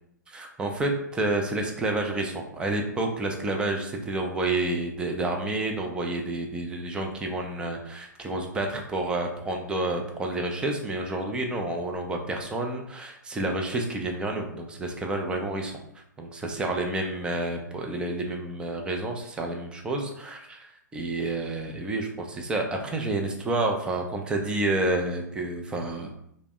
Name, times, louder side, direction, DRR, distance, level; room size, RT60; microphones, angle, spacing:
voice 1, 0.3-15.8 16.2-26.1, right 2 dB, 10° right, 2 dB, 0.4 m, -29 dB
3.3 x 2.1 x 3.5 m, 0.74 s
figure-of-eight pair, 115°, 10 cm